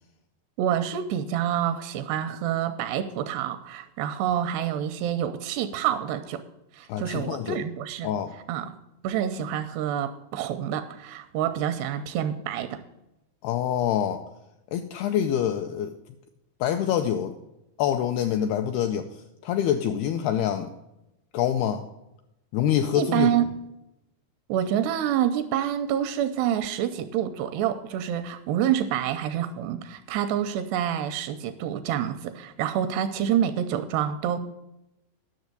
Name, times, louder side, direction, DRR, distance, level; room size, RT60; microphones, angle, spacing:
voice 1, 0.6-6.4 6.7-8.1 8.5-8.8 9.0-12.8 22.9-23.5 24.5-34.4, right 10 dB, 85° right, 9 dB, 2.5 m, -27 dB
voice 2, 6.9-7.6 8.0-8.3 13.4-14.2 14.7-15.9 16.6-17.4 17.8-20.7 21.3-21.9 22.5-23.3, left 10 dB, 85° left, 6 dB, 2.3 m, -26 dB
10.5 x 6.7 x 6.6 m, 0.89 s
omnidirectional pair, 5.1 m